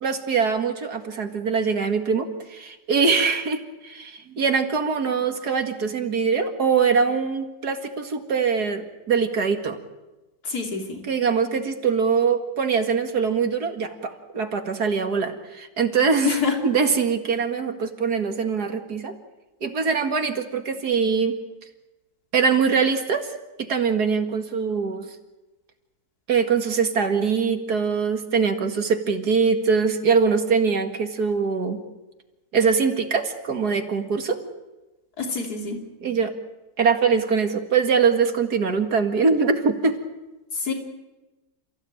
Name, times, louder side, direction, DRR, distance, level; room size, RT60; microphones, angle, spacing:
voice 1, 0.0-9.8 11.0-16.4 16.6-19.1 19.6-21.4 22.3-23.3 23.6-25.1 26.3-31.8 32.5-34.4 36.0-36.3 36.8-40.0, right 5 dB, 70° right, 6 dB, 2.5 m, -23 dB
voice 2, 10.5-11.0 16.2-16.5 35.2-35.8 40.7-40.8, left 5 dB, 70° left, 2 dB, 3.7 m, -25 dB
29.5 x 15.5 x 9.0 m, 1.1 s
omnidirectional pair, 1.7 m